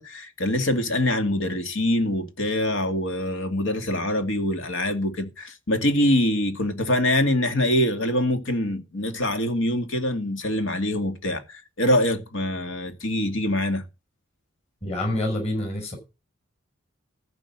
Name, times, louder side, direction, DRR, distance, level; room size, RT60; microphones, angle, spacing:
voice 1, 0.0-13.8, left 1 dB, 75° left, 2.4 m, -24 dB
voice 2, 14.8-16.0, left 1 dB, 30° left, 5.9 m, -27 dB
14.5 x 5.3 x 8.7 m
head